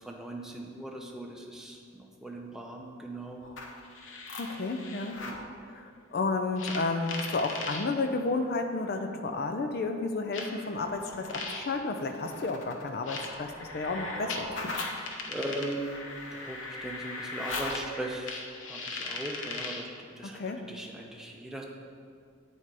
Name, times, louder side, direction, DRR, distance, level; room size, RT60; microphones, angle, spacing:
voice 1, 0.1-1.8 2.2-3.4 5.2-5.3 15.3-15.9 16.4-18.4 18.7-19.9 20.2-20.4 20.7-21.6, right 1 dB, ahead, 0 dB, 0.6 m, -38 dB
sound 1, 3.4-5.4 6.6-7.8 8.9-9.0 10.3-19.9, left 3 dB, 70° left, 0.8 m, -39 dB
voice 2, 4.4-5.2 5.7-14.8 20.2-20.6, left 3 dB, 50° left, 5 dB, 0.4 m, -32 dB
8.9 x 4.2 x 4.7 m, 2.3 s
head